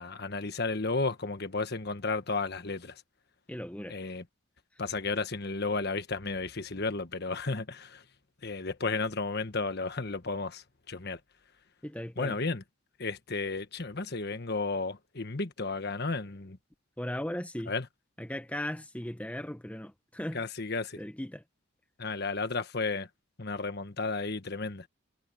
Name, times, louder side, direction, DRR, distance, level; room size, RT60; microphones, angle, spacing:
voice 1, 0.0-3.0 3.9-4.2 4.8-8.0 8.4-11.2 12.2-12.6 13.0-16.6 17.7-17.9 20.3-21.0 22.0-23.1 23.4-24.9, left 3 dB, 50° left, 1.4 m, -33 dB
voice 2, 3.5-4.0 11.8-12.4 17.0-17.7 18.2-20.4 21.0-21.4, left 1 dB, 5° left, 1.0 m, -37 dB
head